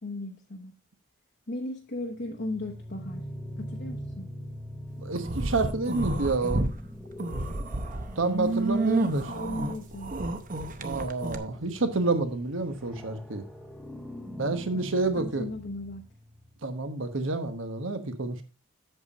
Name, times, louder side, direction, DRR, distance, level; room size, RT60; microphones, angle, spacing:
voice 1, 0.0-0.7 1.5-3.2 3.6-4.3 8.7-10.1 12.9-13.0 14.7-16.0, left 1 dB, 50° left, 0 dB, 1.0 m, -37 dB
sound 1, 2.0-16.6, equal, ahead, 0.9 m, -43 dB
voice 2, 5.0-6.6 8.2-9.2 10.8-13.4 14.4-15.5 16.6-18.4, right 3 dB, 70° right, 8 dB, 1.2 m, -29 dB
sound 2, 5.1-6.7 7.1-11.4, right 2 dB, 40° right, 0.7 m, -30 dB
8.0 x 7.2 x 4.0 m, 0.32 s
head